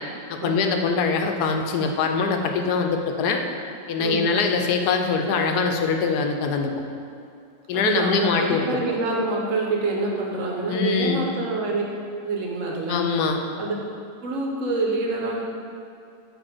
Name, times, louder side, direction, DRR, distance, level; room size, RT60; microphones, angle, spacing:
voice 1, 0.3-3.4 3.9-6.7 7.7-8.6 10.7-11.2 12.9-13.4, left 5 dB, 90° left, 4 dB, 1.1 m, -23 dB
voice 2, 4.0-4.5 7.7-11.8 12.2-13.1 13.6-13.7 14.2-15.4, right 2 dB, 60° right, -1 dB, 1.1 m, -26 dB
7.9 x 2.9 x 4.9 m, 2.5 s
omnidirectional pair, 1.7 m